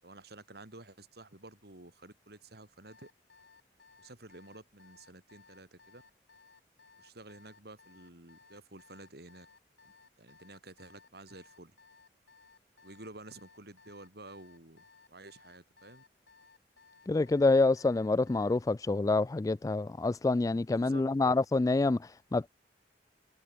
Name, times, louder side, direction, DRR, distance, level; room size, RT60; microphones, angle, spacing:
voice 1, 0.0-3.1 4.0-6.0 7.0-9.5 10.2-11.8 12.8-16.0 20.7-21.3, right 2 dB, 65° right, 4.2 m, -51 dB
Alarm, 2.8-18.7, left 4 dB, 80° left, 3.1 m, -60 dB
voice 2, 17.1-22.5, left 3 dB, 20° left, 0.3 m, -27 dB
head